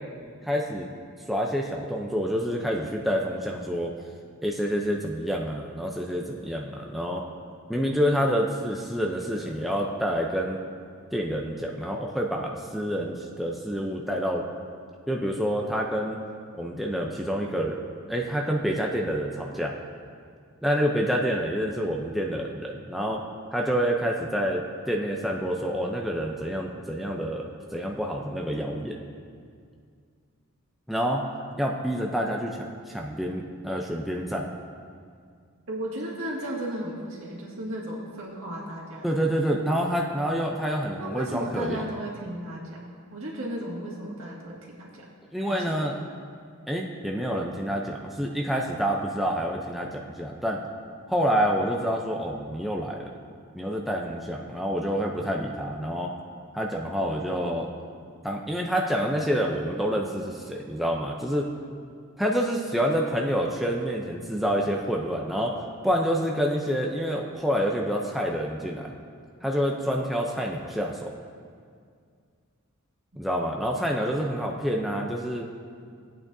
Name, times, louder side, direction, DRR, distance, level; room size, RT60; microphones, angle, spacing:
voice 1, 0.4-0.9 1.3-3.9 4.4-7.2 7.7-10.6 11.1-14.4 15.1-16.2 16.5-17.8 18.1-19.7 20.6-23.2 23.5-29.0 30.9-31.2 31.6-34.5 39.0-41.8 45.3-46.0 46.7-50.6 51.1-53.1 53.5-56.1 56.5-57.7 58.2-61.5 62.2-65.6 65.8-68.9 69.4-71.1 73.2-75.5, equal, ahead, -1 dB, 0.5 m, -27 dB
voice 2, 35.7-39.2 41.0-42.8 43.1-45.1 45.5-45.9 73.1-73.2, right 1 dB, 65° right, -4 dB, 2.0 m, -35 dB
16.5 x 8.7 x 2.7 m, 2.2 s
head